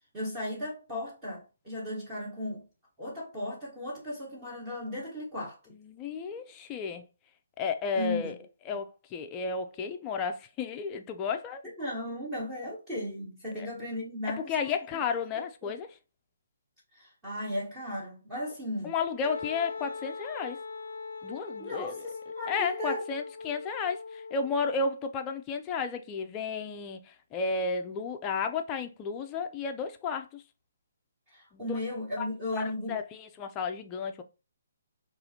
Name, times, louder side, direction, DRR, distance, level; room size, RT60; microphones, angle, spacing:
voice 1, 0.1-2.6 3.0-5.6 8.0-8.3 11.8-14.7 15.4-15.7 16.9-18.9 21.6-23.0 31.3-33.0, left 1 dB, 15° right, 1.0 m, -36 dB
voice 2, 5.8-7.0 7.6-8.4 8.7-11.6 13.6-13.7 14.4-16.0 18.8-20.6 21.2-22.1 22.5-30.4 31.5-31.8 32.2-32.3 32.5-34.2, left 5 dB, 20° left, 0.3 m, -33 dB
Wind instrument woodwind instrument, 19.2-24.9, left 4 dB, 85° left, 0.4 m, -41 dB
4.1 x 2.4 x 2.7 m
hypercardioid pair, 160°, 0 cm